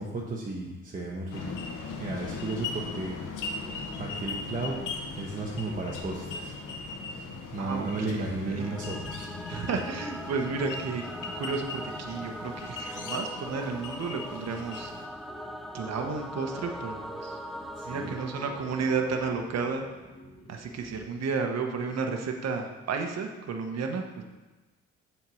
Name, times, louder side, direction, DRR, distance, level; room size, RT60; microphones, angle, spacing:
voice 1, 0.0-1.4 1.7-3.2 3.9-6.6 7.5-9.2 17.8-18.2, right 2 dB, 25° right, -3 dB, 1.1 m, -34 dB
sound 1, 1.3-15.1, left 3 dB, 80° left, 1.0 m, -39 dB
sound 2, 3.5-21.1, left 2 dB, 15° left, 1.0 m, -51 dB
voice 2, 7.6-8.8 9.5-14.9 15.7-17.4 17.8-19.9 20.5-24.2, right 4 dB, 60° right, 3 dB, 1.1 m, -32 dB
Singing / Musical instrument, 8.6-19.9, equal, ahead, 0.4 m, -41 dB
7.2 x 4.5 x 6.2 m, 1.2 s
cardioid pair, 90°, 30 cm